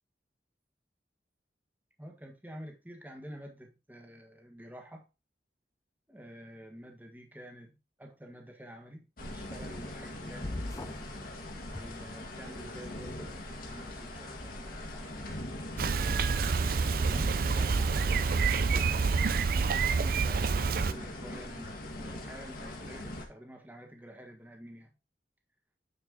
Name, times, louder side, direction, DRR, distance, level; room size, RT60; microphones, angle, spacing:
voice 1, 2.0-5.0 6.1-7.7 8.0-11.1 11.7-13.3 13.7-15.1 16.2-19.2 19.8-24.9, equal, 10° right, 3 dB, 1.5 m, -49 dB
sound 1, 9.2-23.2, left 1 dB, 55° left, 1.8 m, -42 dB
sound 2, 10.4-11.1 11.7-12.6, left 2 dB, 20° left, 0.4 m, -40 dB
Bicycle, 15.8-20.9, right 5 dB, 55° right, 0.5 m, -27 dB
9.4 x 4.7 x 3.7 m, 0.28 s
head